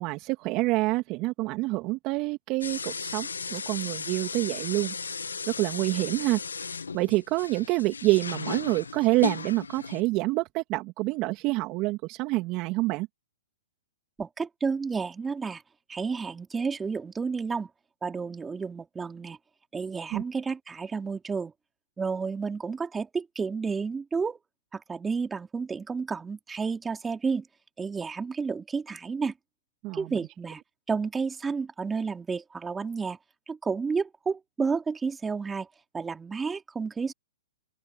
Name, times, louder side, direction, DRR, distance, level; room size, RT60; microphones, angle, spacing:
voice 1, 0.0-4.9 5.6-6.4 6.9-13.1 20.1-20.2 29.8-30.1, right 21 dB, 35° right, 2.7 m, -27 dB
sound 1, 2.6-10.0, left 5 dB, 90° left, 2.1 m, -36 dB
voice 2, 14.2-15.6 15.9-17.7 18.0-19.4 19.7-21.5 22.0-24.4 24.7-27.5 27.8-29.3 29.9-30.6 30.9-33.2 33.5-35.7 35.9-37.1, right 5 dB, 10° right, 3.5 m, -31 dB
open air
hypercardioid pair, 125°, 0 cm